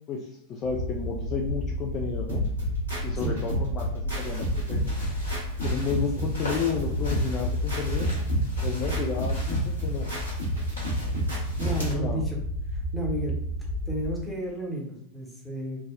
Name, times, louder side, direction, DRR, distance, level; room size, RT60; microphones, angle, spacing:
voice 1, 0.1-2.4 3.0-4.8 5.6-8.1 8.6-10.1 11.6-12.2, left 5 dB, 30° left, 0 dB, 0.3 m, -32 dB
sound 1, 0.6-14.2, equal, 60° right, 0.8 m, -32 dB
sound 2, 2.3-11.9, equal, 75° right, 1.2 m, -31 dB
sound 3, 4.1-11.9, left 2 dB, 75° left, 1.2 m, -41 dB
voice 2, 11.6-12.4 12.7-13.4 13.9-15.9, equal, ahead, -3 dB, 0.8 m, -32 dB
3.4 x 2.0 x 2.3 m, 0.71 s
figure-of-eight pair, 90°, 0 cm